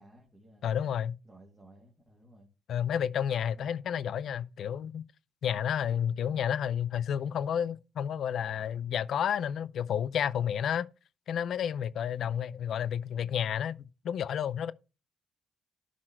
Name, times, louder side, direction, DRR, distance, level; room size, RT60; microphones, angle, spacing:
voice 1, 0.0-0.8 1.2-2.5 3.6-3.8, right 1 dB, 15° right, 2.7 m, -57 dB
voice 2, 0.6-1.2 2.7-5.0 5.4-10.9 11.3-14.7, left 9 dB, 65° left, 0.5 m, -31 dB
12.0 x 4.3 x 4.4 m
cardioid pair, 90°, 0 cm